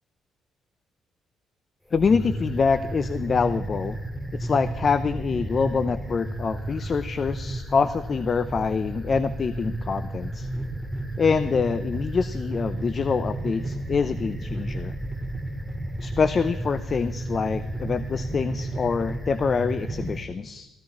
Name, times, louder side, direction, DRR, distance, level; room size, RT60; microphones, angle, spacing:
voice 1, 1.9-4.0 4.3-10.5 11.2-14.9 16.0-20.7, left 5 dB, 45° left, 14 dB, 0.6 m, -25 dB
sound 1, 1.9-20.2, right 1 dB, 10° left, 2.3 m, -32 dB
15.5 x 15.0 x 4.3 m, 1.0 s
cardioid pair, 90°, 0 cm